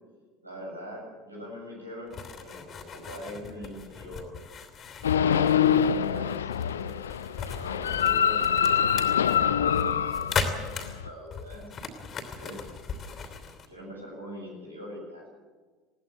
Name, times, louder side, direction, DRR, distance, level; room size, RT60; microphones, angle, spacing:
voice 1, 0.4-4.3 5.1-6.9 7.6-11.6 12.2-12.7 13.0-15.3, equal, 85° right, -2 dB, 7.5 m, -43 dB
sound 1, 2.1-13.7, left 5 dB, 35° left, 3.0 m, -37 dB
sound 2, 5.0-11.1, left 8 dB, 75° left, 0.7 m, -25 dB
20.5 x 17.5 x 7.4 m, 1.4 s
figure-of-eight pair, 70°, 0 cm